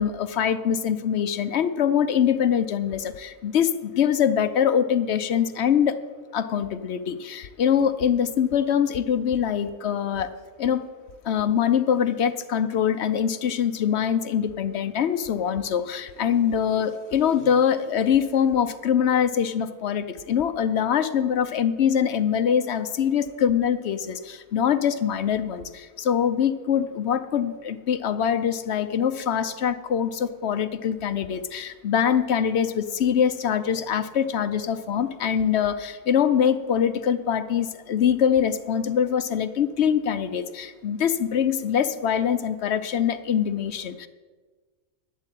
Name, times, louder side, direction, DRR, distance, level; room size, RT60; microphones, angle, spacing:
voice 1, 0.0-6.0 6.3-10.3 10.6-10.8 11.2-44.1, left 8 dB, 55° left, 10 dB, 0.8 m, -23 dB
12.0 x 7.3 x 9.0 m, 1.4 s
omnidirectional pair, 1.6 m